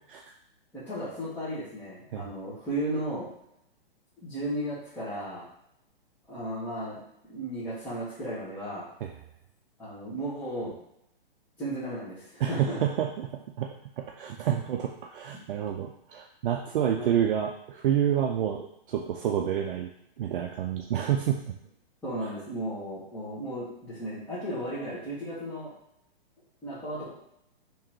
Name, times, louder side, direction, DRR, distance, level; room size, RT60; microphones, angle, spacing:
voice 1, 0.7-3.3 4.2-5.5 6.3-7.0 7.3-8.9 9.8-10.7 11.6-12.8 17.0-17.1 22.0-25.7 26.6-27.1, right 1 dB, 5° left, -13 dB, 1.3 m, -35 dB
voice 2, 12.4-13.7 14.0-19.9 20.2-21.4 22.2-22.3, right 9 dB, 60° right, 2 dB, 0.5 m, -28 dB
3.6 x 3.0 x 3.0 m, 0.76 s
hypercardioid pair, 140°, 30 cm